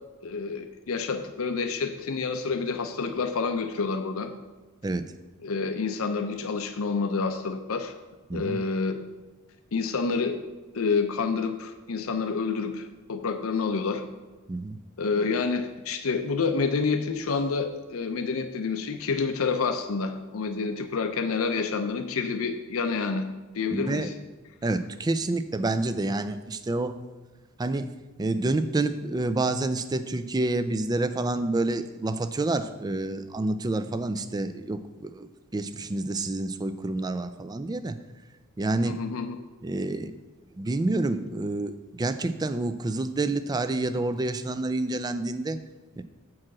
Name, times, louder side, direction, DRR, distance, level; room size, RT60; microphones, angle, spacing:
voice 1, 0.2-4.3 5.4-7.9 8.3-9.0 9.7-10.4 10.7-14.0 15.0-23.2 23.5-24.1 38.9-39.4, left 4 dB, 70° left, 6 dB, 0.6 m, -28 dB
voice 2, 8.3-8.6 14.5-14.8 23.7-24.1 24.6-27.0 27.6-27.9 28.2-38.0 38.6-39.0 39.6-40.1 40.6-45.6 46.0-46.1, right 2 dB, 20° right, 11 dB, 0.3 m, -28 dB
7.5 x 4.7 x 6.0 m, 1.2 s
head